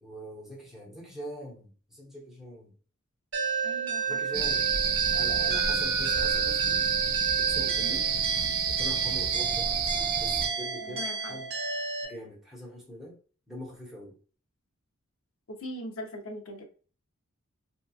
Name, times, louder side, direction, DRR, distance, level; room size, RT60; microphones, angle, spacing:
voice 1, 0.0-2.7 4.1-4.7 5.1-6.9 7.4-8.2 8.7-9.7 10.2-11.5 12.0-13.2 13.5-14.2, equal, ahead, 0.8 m, -43 dB
sound 1, 3.3-12.1, right 5 dB, 70° right, 1.0 m, -31 dB
voice 2, 3.6-4.2 7.8-8.0 10.8-11.4 15.6-16.6, left 1 dB, 75° left, 0.6 m, -40 dB
sound 2, 4.3-10.5, right 7 dB, 45° right, 0.4 m, -28 dB
2.8 x 2.3 x 2.3 m
head